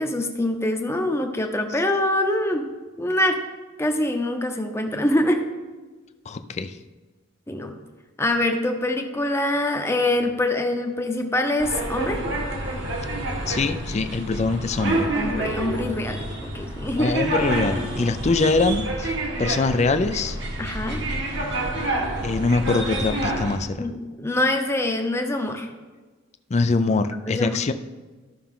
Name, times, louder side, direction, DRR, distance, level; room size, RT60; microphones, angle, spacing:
voice 1, 0.0-2.7 3.0-3.4 3.8-5.4 7.5-7.7 8.2-12.2 15.1-17.2 20.6-21.0 23.8-25.7 27.3-27.6, left 1 dB, 15° left, 4 dB, 0.8 m, -24 dB
voice 2, 6.3-6.7 13.5-15.1 17.0-19.1 19.4-20.4 22.2-23.9 26.5-27.7, left 3 dB, 35° left, 10 dB, 0.4 m, -23 dB
sound 1, 11.6-23.6, right 1 dB, 60° right, 1.5 m, -28 dB
13.0 x 5.7 x 3.7 m, 1.3 s
head